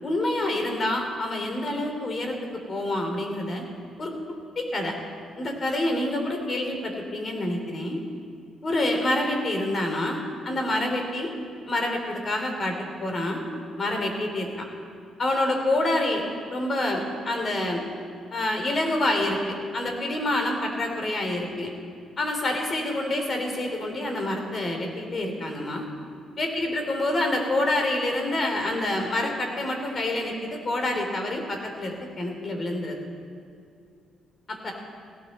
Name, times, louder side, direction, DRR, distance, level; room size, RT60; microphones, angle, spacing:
voice 1, 0.0-2.3 2.7-3.6 4.0-4.1 4.5-4.9 5.4-8.0 8.6-11.3 11.7-12.7 13.0-13.4 13.8-14.6 15.2-16.2 16.5-17.8 18.3-21.7 22.2-25.9 26.4-33.0 34.5-34.7, left 1 dB, 40° left, 3 dB, 3.2 m, -27 dB
17.5 x 16.0 x 4.3 m, 2.5 s
cardioid pair, 90°, 0 cm